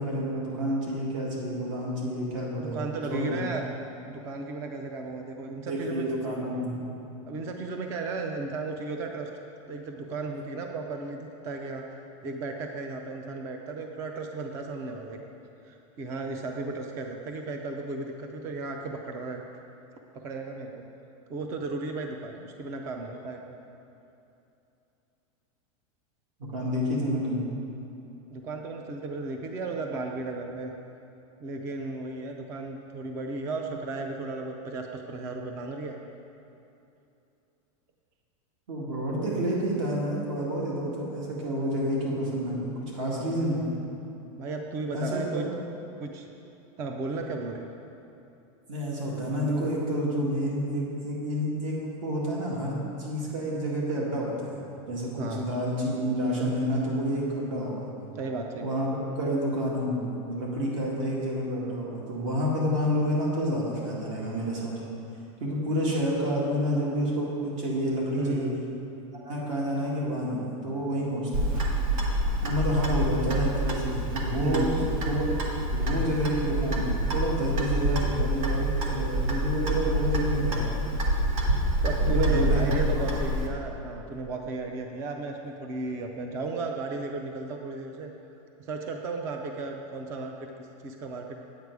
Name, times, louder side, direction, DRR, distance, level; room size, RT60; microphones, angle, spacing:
voice 1, 0.0-3.4 5.7-6.8 26.4-27.4 38.7-43.6 44.9-45.5 48.7-57.9 58.6-64.7 65.4-68.5 69.2-71.6 72.4-74.7 75.1-75.3 75.7-80.9 82.0-83.0, equal, 65° right, -4 dB, 2.1 m, -29 dB
voice 2, 2.6-3.6 4.1-6.1 7.3-9.3 9.7-11.8 12.2-15.3 15.6-19.4 20.2-20.9 21.3-23.5 28.3-30.7 31.4-36.1 44.4-45.5 46.0-46.3 46.8-47.7 55.2-55.5 58.2-58.8 68.2-68.6 74.4-74.9 81.8-88.1 88.6-91.4, right 3 dB, 15° right, 3 dB, 0.3 m, -34 dB
Clock, 71.3-83.5, right 1 dB, 80° right, 1.5 m, -27 dB
9.2 x 8.1 x 4.7 m, 2.8 s
supercardioid pair, 180°, 18 cm